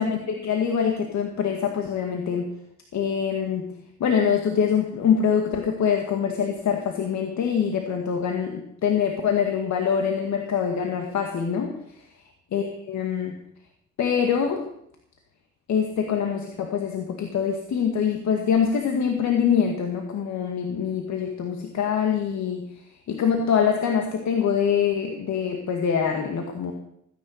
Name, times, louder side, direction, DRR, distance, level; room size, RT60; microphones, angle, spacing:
voice 1, 0.0-2.5 2.9-3.7 4.0-11.7 12.5-13.3 14.0-14.6 15.7-22.7 23.1-26.7, left 7 dB, 65° left, 3 dB, 2.0 m, -24 dB
16.5 x 10.0 x 6.6 m, 0.73 s
cardioid pair, 90°, 30 cm